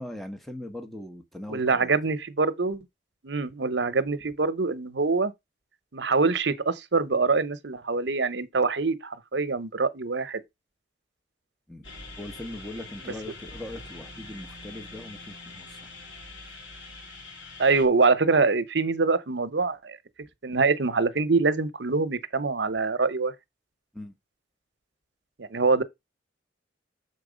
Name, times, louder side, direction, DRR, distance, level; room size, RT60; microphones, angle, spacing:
voice 1, 0.0-1.9 11.7-11.9 12.2-15.9 23.9-24.1, left 1 dB, ahead, 0.9 m, -40 dB
voice 2, 1.5-2.8 3.2-5.3 5.9-10.4 17.6-20.0 20.4-23.3 25.4-25.8, right 4 dB, 75° right, 0.9 m, -24 dB
sound 1, 11.8-17.9, left 3 dB, 90° left, 2.5 m, -44 dB
6.7 x 4.6 x 5.1 m
head